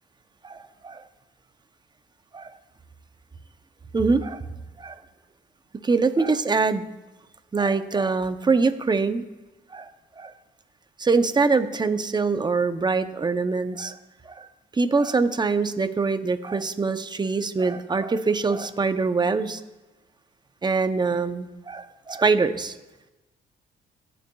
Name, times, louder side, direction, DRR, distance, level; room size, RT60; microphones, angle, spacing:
voice 1, 0.4-1.0 2.3-2.5 3.9-4.4 4.8-4.9 5.8-6.8 7.5-9.2 9.7-9.9 10.2-10.3 11.0-14.0 14.3-14.5 14.8-19.6 20.6-22.7, right 4 dB, 20° right, 10 dB, 0.7 m, -24 dB
19.5 x 6.7 x 2.3 m, 1.0 s
cardioid pair, 90°, 20 cm